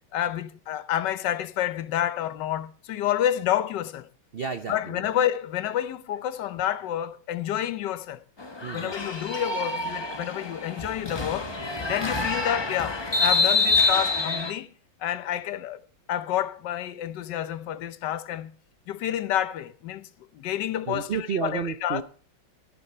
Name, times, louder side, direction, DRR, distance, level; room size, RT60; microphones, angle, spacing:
voice 1, 0.1-4.1 4.7-8.2 8.7-11.5 11.9-14.7 15.0-15.8 16.1-18.5 18.9-20.1 20.3-22.0, left 11 dB, 75° left, 1.3 m, -29 dB
voice 2, 4.3-5.1 8.6-8.9 20.9-22.0, right 6 dB, 80° right, 0.5 m, -31 dB
sound 1, 8.4-14.5, left 3 dB, 25° left, 0.6 m, -26 dB
13.5 x 9.7 x 4.4 m
omnidirectional pair, 2.0 m